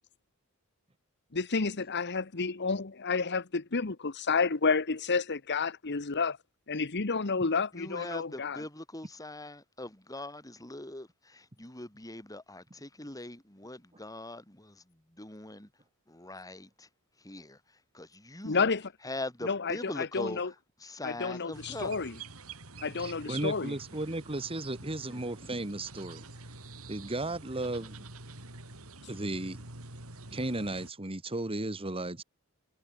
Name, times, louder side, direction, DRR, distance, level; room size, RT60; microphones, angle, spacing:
voice 1, 1.3-6.4 6.7-8.6 18.4-18.9 19.4-20.5 21.0-22.1 22.8-23.7, left 4 dB, 50° left, 1.2 m, -30 dB
voice 2, 7.8-14.8 15.2-15.7 16.1-16.9 17.2-17.6 17.9-18.7 19.0-20.5 20.8-22.0 25.1-25.2, left 2 dB, 15° left, 4.0 m, -42 dB
sound 1, 21.5-30.9, right 3 dB, 70° right, 5.0 m, -47 dB
voice 3, 23.0-26.3 26.9-28.1 29.1-29.6 30.3-32.2, right 2 dB, 25° right, 1.8 m, -35 dB
head